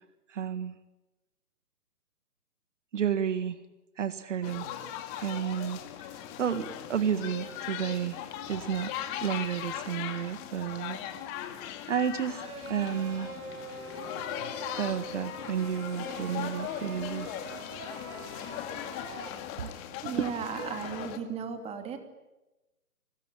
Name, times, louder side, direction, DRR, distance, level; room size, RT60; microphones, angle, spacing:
voice 1, 0.3-0.8 2.9-3.6 4.0-4.7 5.2-5.8 6.1-8.9 9.2-11.0 11.5-11.6 11.9-12.4 12.7-13.3 14.4-17.3 19.6-19.7 20.2-20.3 20.6-20.7, right 8 dB, 50° right, 11 dB, 1.9 m, -31 dB
sound 1, 4.4-21.2, left 11 dB, 20° left, 2.2 m, -39 dB
sound 2, 12.3-19.3, right 3 dB, 70° right, 5.0 m, -44 dB
voice 2, 19.7-22.0, right 7 dB, 15° right, 6 dB, 2.8 m, -36 dB
29.5 x 21.5 x 8.9 m, 1.0 s
figure-of-eight pair, 140°, 46 cm